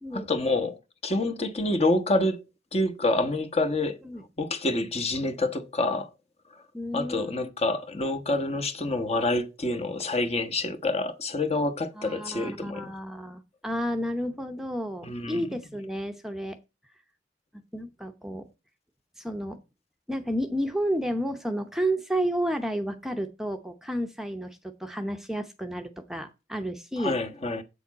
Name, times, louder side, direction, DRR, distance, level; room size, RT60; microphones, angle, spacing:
voice 1, 0.1-2.4 2.7-4.0 4.4-6.1 6.5-6.6 6.9-12.9 15.0-15.4 27.0-27.6, left 2 dB, 35° left, 1.1 m, -27 dB
voice 2, 6.7-7.5 12.0-16.6 17.7-18.5 19.2-19.6 20.1-27.1, equal, ahead, 0.8 m, -31 dB
8.4 x 7.0 x 4.1 m
head